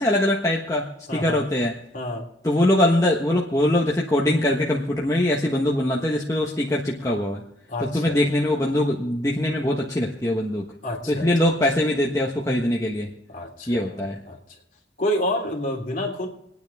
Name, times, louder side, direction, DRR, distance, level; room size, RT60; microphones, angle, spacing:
voice 1, 0.0-1.7 2.4-7.4 7.9-10.7 11.1-13.1 13.7-14.2, left 1 dB, 15° left, -3 dB, 1.3 m, -22 dB
voice 2, 1.1-1.4 1.9-2.2 7.7-8.2 10.8-11.5 13.3-14.0 14.3-14.4 15.0-16.3, left 1 dB, 45° left, 0 dB, 3.3 m, -28 dB
27.5 x 9.5 x 3.6 m, 0.78 s
head